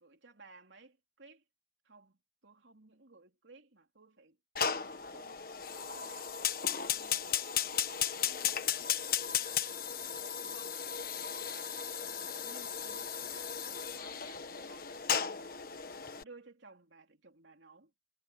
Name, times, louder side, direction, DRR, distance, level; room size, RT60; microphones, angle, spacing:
voice 1, 0.0-1.4 1.8-4.4 4.6-6.5 6.9-17.9, right 3 dB, 75° right, 3.2 m, -58 dB
Fire, 4.6-16.2, left 8 dB, 50° left, 1.4 m, -35 dB
head